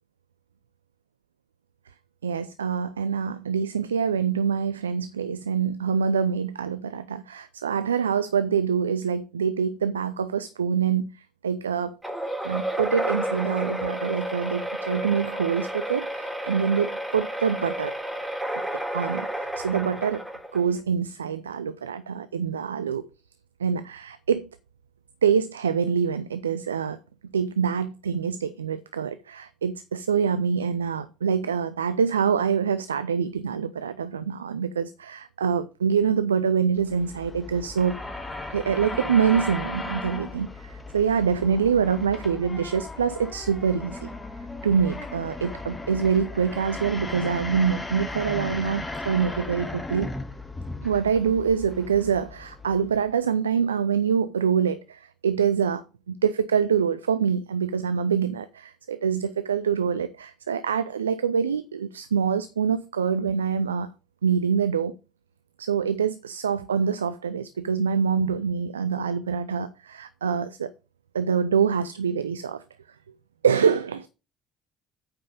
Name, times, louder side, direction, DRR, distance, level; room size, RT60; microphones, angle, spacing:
voice 1, 2.2-12.0 12.4-17.9 18.7-20.2 20.5-23.1 23.6-24.5 25.2-27.0 27.3-38.0 38.5-44.1 44.6-50.1 50.8-63.9 64.2-65.0 65.6-70.7 71.1-72.6 73.4-74.1, right 7 dB, 85° right, 0.4 m, -25 dB
sound 1, 12.0-20.8, right 1 dB, 5° right, 3.2 m, -31 dB
sound 2, 36.8-53.1, left 2 dB, 15° left, 2.0 m, -36 dB
8.9 x 5.5 x 5.1 m
figure-of-eight pair, 55°, 0 cm